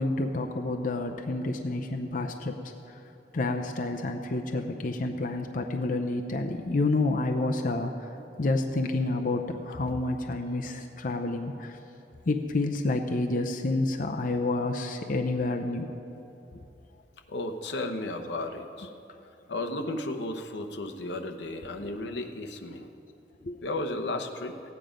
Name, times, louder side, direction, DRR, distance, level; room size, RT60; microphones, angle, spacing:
voice 1, 0.0-2.6 3.3-7.9 8.4-11.8 12.3-16.1 23.4-23.6, left 2 dB, 50° left, 4 dB, 0.6 m, -29 dB
voice 2, 17.3-18.9 19.5-22.9 23.6-24.6, left 2 dB, 85° left, 4 dB, 0.9 m, -34 dB
16.0 x 9.3 x 5.1 m, 2.9 s
head